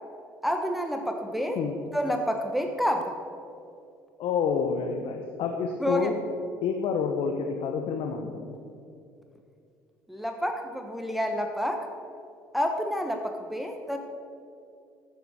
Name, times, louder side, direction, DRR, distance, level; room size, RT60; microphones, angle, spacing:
voice 1, 0.4-1.6 1.9-3.1 5.8-6.1 10.1-11.9 12.5-14.0, equal, ahead, 4 dB, 1.2 m, -29 dB
voice 2, 4.2-6.2 6.6-8.5, left 6 dB, 60° left, 4 dB, 1.1 m, -28 dB
14.0 x 8.2 x 6.4 m, 2.5 s
hypercardioid pair, 55°, 11 cm